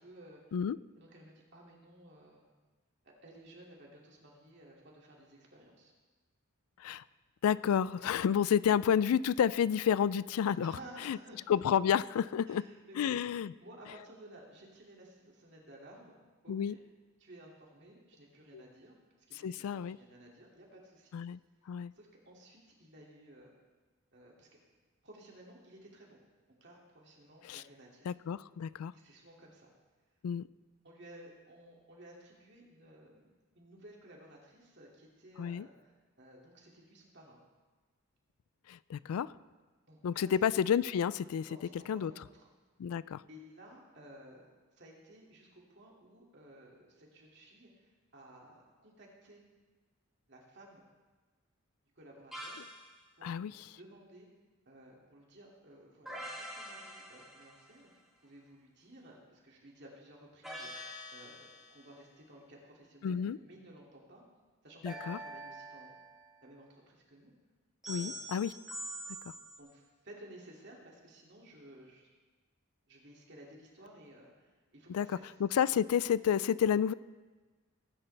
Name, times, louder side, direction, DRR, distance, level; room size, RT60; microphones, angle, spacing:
voice 1, 0.0-0.5 1.0-2.4 3.0-5.9 7.7-7.9 10.6-11.4 12.4-13.1 13.6-16.1 16.4-16.8 17.2-21.2 21.9-23.5 24.1-24.5 25.0-26.2 26.5-28.1 28.9-29.7 30.8-33.3 33.5-37.4 39.9-40.5 41.5-42.5 43.3-49.4 50.3-50.8 52.0-52.6 53.2-53.5 53.8-54.3 54.6-64.2 64.6-66.0 66.4-67.3 67.9-68.2 69.6-72.1 72.9-75.4, right 1 dB, 50° right, -2 dB, 2.5 m, -55 dB
voice 2, 7.4-10.7 11.0-11.2 11.5-12.6 13.0-13.5 16.5-16.7 18.5-18.6 19.4-20.0 21.1-21.4 21.7-21.9 27.5-27.6 28.1-28.9 30.2-30.4 35.4-35.7 38.7-39.3 40.0-41.5 41.9-42.1 42.8-43.2 53.2-53.5 63.0-63.4 64.8-65.2 67.9-68.5 74.9-75.1 75.4-76.9, left 8 dB, 80° left, 19 dB, 0.3 m, -30 dB
sound 1, 52.3-52.9 56.1-57.8 60.4-61.9 64.8-66.3 67.8-69.6, right 1 dB, ahead, 1.8 m, -45 dB
19.0 x 10.0 x 3.4 m, 1.3 s
head